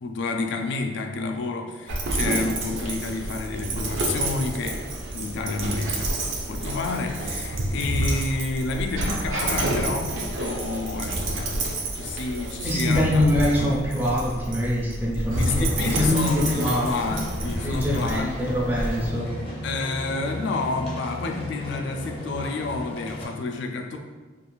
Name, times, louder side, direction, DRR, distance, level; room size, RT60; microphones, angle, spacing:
voice 1, 0.0-13.3 13.6-13.7 14.0-14.1 15.4-18.6 19.6-24.0, left 3 dB, 65° left, 4 dB, 0.3 m, -30 dB
Dog, 1.9-19.1, right 1 dB, 80° right, 0.5 m, -29 dB
voice 2, 12.6-16.9 17.6-19.3, left 1 dB, 10° right, -3 dB, 0.4 m, -24 dB
sound 1, 16.1-23.2, left 1 dB, 35° left, 0.6 m, -36 dB
2.4 x 2.3 x 3.0 m, 1.3 s
head